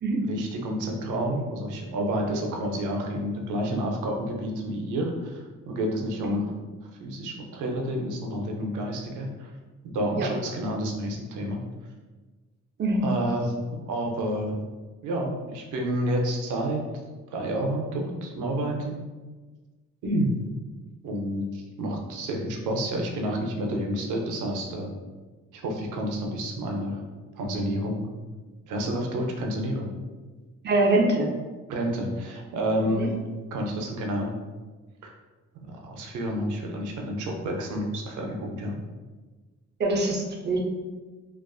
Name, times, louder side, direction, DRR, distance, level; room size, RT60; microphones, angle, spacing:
voice 1, 0.2-6.6 7.0-9.5 9.9-11.6 13.0-13.6 13.9-14.6 15.0-16.8 17.3-19.0 20.0-20.4 21.0-25.0 25.5-27.0 27.4-28.0 28.6-29.9 31.7-33.1 33.5-34.3 35.0-35.1 35.7-38.8, equal, 85° right, 1 dB, 0.5 m, -29 dB
voice 2, 30.6-31.3 33.0-33.1 39.8-40.6, right 2 dB, 35° right, 1 dB, 0.5 m, -24 dB
2.4 x 2.3 x 2.3 m, 1.3 s
cardioid pair, 90°, 30 cm